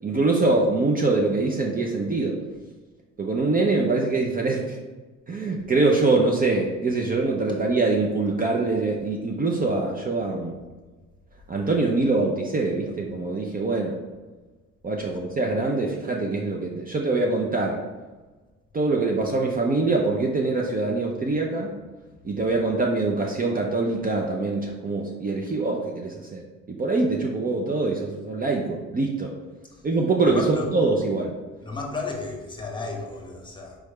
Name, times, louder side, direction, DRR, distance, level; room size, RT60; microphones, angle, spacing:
voice 1, 0.0-2.4 3.2-4.8 5.3-10.6 11.5-14.0 14.8-17.8 18.7-21.7 22.2-29.3 29.8-31.3, right 3 dB, 30° right, 0 dB, 0.5 m, -24 dB
voice 2, 30.3-30.7 31.6-33.8, left 3 dB, 15° left, 0 dB, 1.0 m, -33 dB
4.8 x 3.2 x 3.2 m, 1.3 s
cardioid pair, 90°, 30 cm